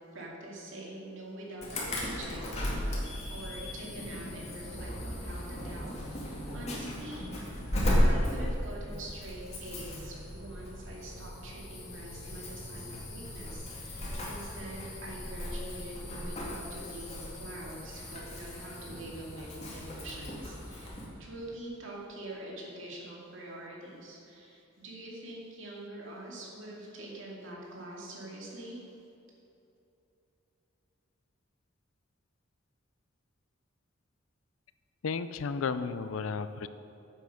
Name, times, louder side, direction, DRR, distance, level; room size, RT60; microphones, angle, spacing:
voice 1, 0.1-2.8 3.3-5.9 6.2-7.3 8.0-28.8, right 1 dB, 70° right, -3 dB, 2.5 m, -44 dB
Insect / Alarm, 1.6-21.1, equal, 35° left, 2.3 m, -35 dB
voice 2, 35.0-36.7, left 5 dB, 75° left, 13 dB, 0.5 m, -33 dB
9.0 x 7.8 x 6.4 m, 2.8 s
head